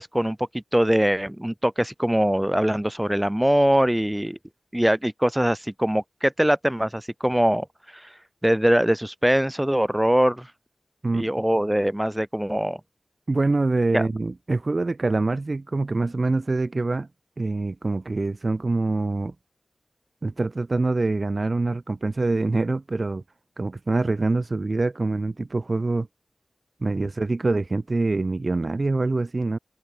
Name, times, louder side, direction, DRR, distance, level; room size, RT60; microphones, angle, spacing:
voice 1, 0.0-4.4 4.7-7.7 7.9-8.1 8.4-10.5 11.1-12.8 13.9-14.1, equal, 5° right, 7.8 m, -22 dB
voice 2, 13.3-17.1 17.4-19.3 20.2-23.2 23.6-26.1 26.8-29.6, right 3 dB, 40° right, 5.5 m, -25 dB
wide cardioid pair, 80°, 0 cm